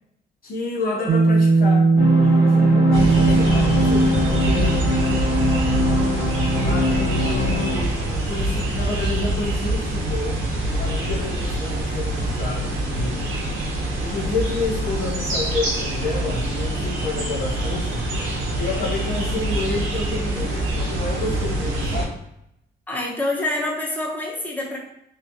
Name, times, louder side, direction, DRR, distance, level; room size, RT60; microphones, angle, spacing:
voice 1, 0.4-1.9 2.2-4.8 6.6-13.3 14.0-18.1 18.6-22.1, left 3 dB, 50° left, -2 dB, 0.7 m, -29 dB
sound 1, 1.1-7.8, right 3 dB, 45° right, 0.6 m, -20 dB
sound 2, 2.0-7.8, left 1 dB, 90° left, 1.4 m, -23 dB
sound 3, 2.9-22.1, right 1 dB, 85° right, 1.1 m, -25 dB
voice 2, 22.9-24.8, left 2 dB, 10° left, -3 dB, 1.1 m, -26 dB
3.7 x 3.0 x 2.9 m, 0.78 s
cardioid pair, 90°, 20 cm